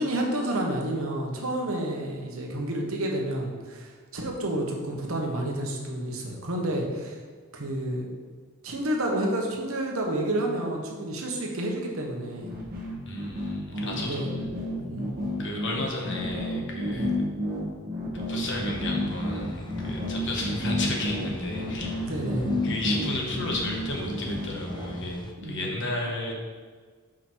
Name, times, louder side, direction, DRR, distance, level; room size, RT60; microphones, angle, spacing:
voice 1, 0.0-7.2 7.5-8.1 8.6-12.5 13.7-14.3 14.8-15.1 16.9-17.1 22.1-22.5 25.4-25.8, right 1 dB, 65° right, 1 dB, 1.1 m, -30 dB
sound 1, 12.4-24.9, left 1 dB, 40° right, 1.2 m, -31 dB
voice 2, 13.1-14.3 15.4-17.2 18.1-22.0 22.6-26.3, left 2 dB, 55° left, 0 dB, 1.1 m, -33 dB
sound 2, 18.4-25.3, left 2 dB, 20° left, 0.5 m, -40 dB
5.9 x 5.0 x 4.5 m, 1.5 s
head